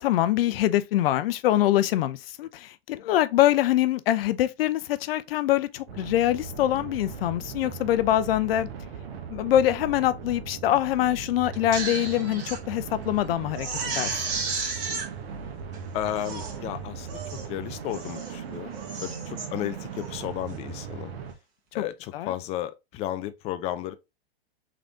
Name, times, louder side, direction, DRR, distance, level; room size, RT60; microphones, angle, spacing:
voice 1, 0.0-8.7 9.3-13.7 13.9-14.2 21.8-21.9 22.1-22.3, left 13 dB, 65° left, 0.6 m, -24 dB
sound 1, 5.9-21.3, right 6 dB, 65° right, 1.2 m, -38 dB
Crying sobbing, 11.5-12.6 13.0-13.1 13.5-15.1 15.7-15.8 16.2-16.6 17.1-17.5 17.9-18.3 18.7-19.5 19.9-20.2, right 4 dB, 40° right, 1.9 m, -33 dB
voice 2, 15.9-17.2 17.5-18.7 19.0-21.1 21.7-23.9, left 13 dB, 20° left, 0.3 m, -33 dB
3.8 x 3.3 x 3.7 m
hypercardioid pair, 125°, 32 cm